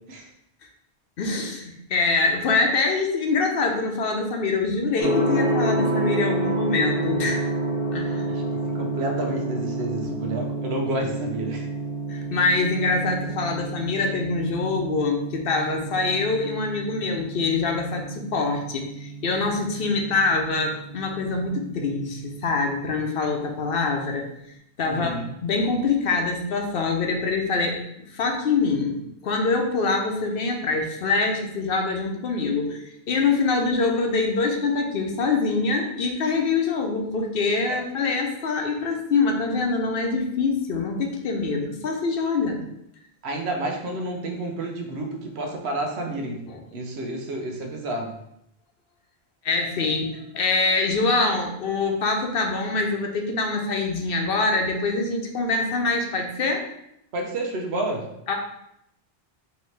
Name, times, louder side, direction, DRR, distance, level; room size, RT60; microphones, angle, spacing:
voice 1, 1.2-7.4 7.9-8.3 12.1-24.3 24.8-27.8 28.1-42.6 46.5-46.6 49.4-56.7 58.3-58.4, left 3 dB, 65° left, 3 dB, 0.8 m, -24 dB
Gong, 5.0-22.9, right 2 dB, 15° right, 1.2 m, -29 dB
voice 2, 8.1-11.7 24.9-25.3 37.7-37.8 43.2-46.5 46.7-48.2 57.1-58.1, right 1 dB, 80° right, 2 dB, 1.0 m, -30 dB
4.3 x 2.9 x 3.2 m, 0.77 s
omnidirectional pair, 1.1 m